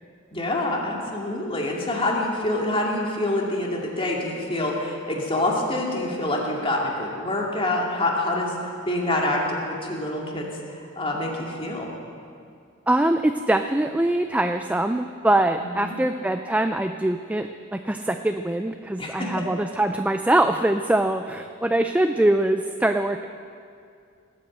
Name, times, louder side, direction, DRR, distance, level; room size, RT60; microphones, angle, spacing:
voice 1, 0.3-11.9 15.6-15.9 19.0-19.3, left 1 dB, 25° left, -1 dB, 2.3 m, -26 dB
voice 2, 12.9-23.2, right 1 dB, 5° right, 7 dB, 0.4 m, -23 dB
18.5 x 8.6 x 7.9 m, 2.4 s
head